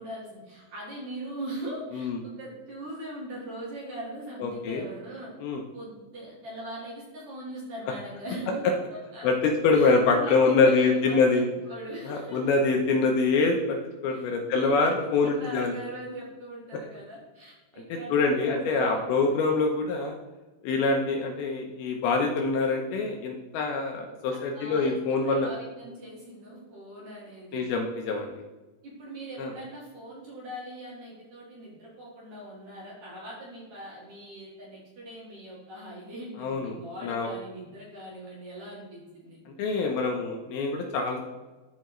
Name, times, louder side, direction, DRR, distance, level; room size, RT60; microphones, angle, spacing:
voice 1, 0.0-5.3 5.7-8.6 8.9-9.3 9.7-12.4 14.1-14.9 15.2-19.4 24.3-27.7 28.8-39.4, right 1 dB, 50° right, -6 dB, 2.5 m, -41 dB
voice 2, 4.4-4.8 5.4-5.6 9.2-11.4 12.1-13.8 14.0-15.7 18.1-20.1 20.6-25.5 27.5-28.3 29.4-29.5 36.4-36.8 37.0-37.3 39.5-41.2, left 4 dB, 75° left, 2 dB, 2.4 m, -25 dB
12.5 x 4.7 x 3.1 m, 1.2 s
omnidirectional pair, 4.9 m